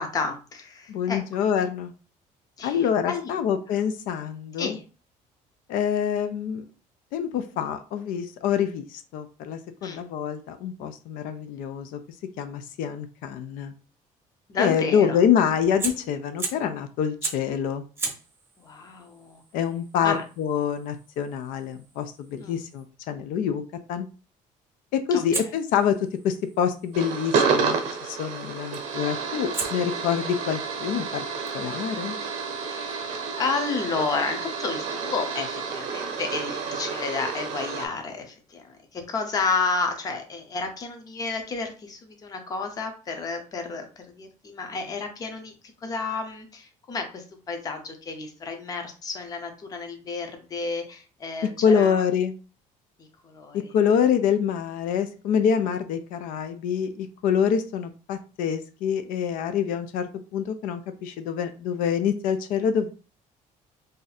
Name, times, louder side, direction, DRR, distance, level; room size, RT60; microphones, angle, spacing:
voice 1, 0.0-1.2 2.6-3.3 4.6-4.8 9.8-10.0 14.5-15.2 18.6-19.4 20.0-20.2 22.4-22.6 25.1-25.2 32.6-43.9 44.2-45.5 45.8-52.0 53.0-53.7, left 4 dB, 25° left, 5 dB, 0.6 m, -31 dB
voice 2, 0.9-1.9 2.6-4.8 5.7-6.6 7.1-12.0 12.4-13.7 14.6-17.8 19.5-23.6 23.9-24.1 24.9-26.0 26.2-31.2 31.5-32.2 51.6-52.3 53.5-62.9, left 8 dB, 85° left, 9 dB, 0.4 m, -26 dB
Fire, 15.8-16.8 17.2-17.6 18.0-22.9 25.3-27.4 28.7-29.0 29.5-33.0, right 4 dB, 15° right, 0.5 m, -38 dB
sound 1, 26.9-37.9, right 5 dB, 55° right, 0.7 m, -30 dB
2.6 x 2.4 x 4.0 m, 0.35 s
cardioid pair, 175°, 14 cm